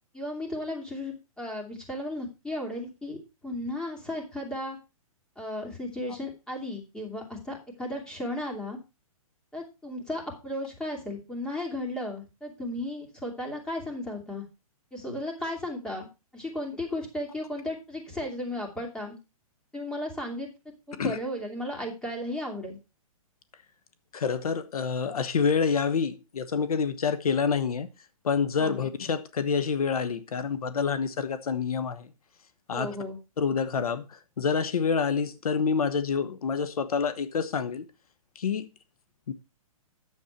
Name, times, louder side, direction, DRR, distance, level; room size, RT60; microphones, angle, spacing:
voice 1, 0.1-4.8 5.4-8.8 9.5-14.4 14.9-16.1 16.3-19.2 19.7-20.5 20.9-22.8 28.6-28.9 32.7-33.2, left 1 dB, 5° left, 2.7 m, -35 dB
voice 2, 24.1-27.9 28.2-32.1 32.7-32.9 33.4-34.0 34.4-37.9 38.4-38.7 39.3-39.4, left 6 dB, 80° left, 1.1 m, -27 dB
9.6 x 7.3 x 4.4 m
hypercardioid pair, 140°, 18 cm